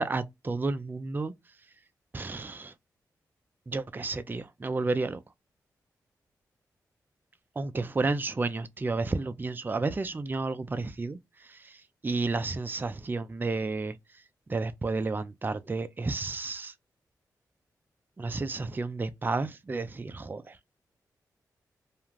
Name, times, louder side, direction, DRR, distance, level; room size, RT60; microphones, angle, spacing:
voice 1, 0.0-1.3 2.1-2.7 3.7-5.2 7.6-11.2 11.4-11.8 12.0-14.0 14.5-16.7 18.2-20.6, right 3 dB, 25° right, 0.4 m, -31 dB
2.4 x 2.3 x 3.1 m
supercardioid pair, 45°, 7 cm